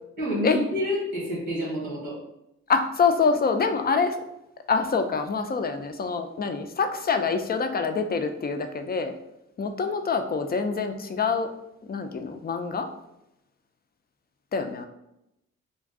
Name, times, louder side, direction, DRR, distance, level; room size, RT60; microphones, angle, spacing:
voice 1, 0.2-2.2, equal, 90° right, -4 dB, 1.1 m, -28 dB
voice 2, 2.7-4.2 4.7-9.1 9.6-11.5 11.9-12.9 14.5-14.9, left 5 dB, 30° left, 7 dB, 0.4 m, -25 dB
2.5 x 2.2 x 3.5 m, 0.86 s
supercardioid pair, 50°, 31 cm